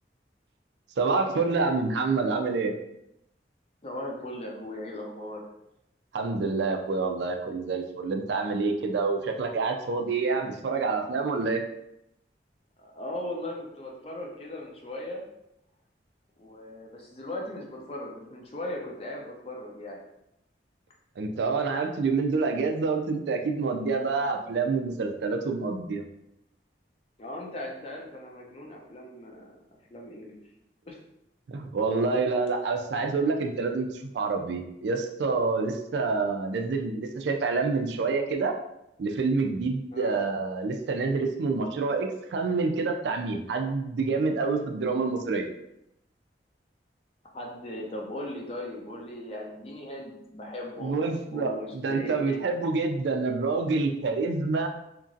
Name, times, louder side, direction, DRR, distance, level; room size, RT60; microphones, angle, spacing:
voice 1, 1.0-2.7 6.1-11.6 21.2-26.0 31.5-38.5 39.0-45.5 50.8-54.7, right 4 dB, 75° right, 4 dB, 0.4 m, -27 dB
voice 2, 3.8-5.4 12.8-15.3 16.4-20.0 27.2-29.6 29.9-30.4 30.9-31.0 39.9-40.1 47.3-52.5, left 1 dB, 35° left, -1 dB, 0.5 m, -38 dB
2.9 x 2.4 x 2.6 m, 0.82 s
head